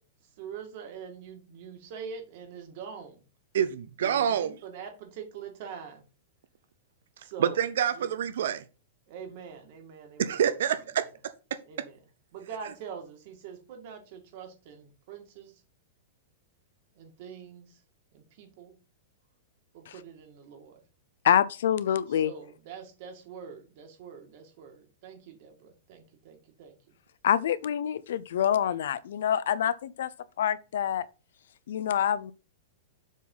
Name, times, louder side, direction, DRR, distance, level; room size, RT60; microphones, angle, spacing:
voice 1, 0.4-3.2 4.0-6.0 7.2-7.6 8.0-8.2 9.1-10.4 11.7-12.0 12.3-15.6 17.0-17.8 18.1-18.8 19.7-20.8 22.1-26.9, right 6 dB, 45° right, 2.1 m, -44 dB
voice 2, 3.5-4.6 7.4-8.6 10.2-11.0, right 9 dB, 70° right, 0.7 m, -27 dB
voice 3, 21.2-22.3 27.2-30.1 30.4-31.1 31.7-32.3, left 9 dB, 70° left, 0.6 m, -26 dB
7.2 x 4.1 x 5.5 m
supercardioid pair, 170°, 0 cm